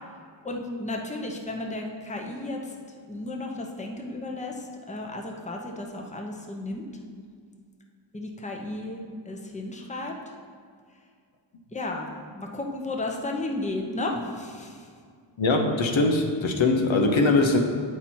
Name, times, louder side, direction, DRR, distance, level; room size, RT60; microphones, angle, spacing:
voice 1, 0.4-2.7 3.1-6.9 8.1-10.1 11.7-12.1 12.3-14.9, left 2 dB, 15° left, 1 dB, 0.9 m, -33 dB
voice 2, 15.4-17.6, left 3 dB, 65° left, 3 dB, 0.9 m, -21 dB
8.8 x 4.4 x 4.4 m, 2.1 s
wide cardioid pair, 80°, 49 cm